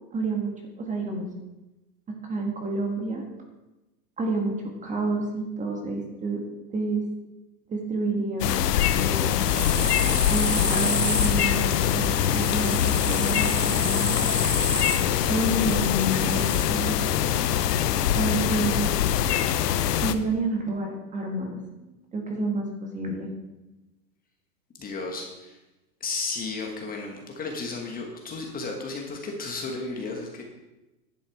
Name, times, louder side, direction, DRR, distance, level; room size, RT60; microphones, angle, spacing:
voice 1, 0.1-1.3 2.1-3.3 4.2-6.4 6.7-7.0 7.7-8.5 9.0-9.5 10.3-14.2 15.3-16.9 18.1-18.9 20.0-23.3, right 2 dB, 15° right, 2 dB, 1.5 m, -29 dB
sound 1, 8.4-20.1, left 10 dB, 75° left, 0.9 m, -24 dB
sound 2, 9.5-16.6, left 2 dB, ahead, 1.0 m, -31 dB
voice 2, 24.8-25.6 26.0-30.4, left 3 dB, 20° left, 1 dB, 1.3 m, -33 dB
10.5 x 7.1 x 4.8 m, 1.0 s
hypercardioid pair, 135°, 48 cm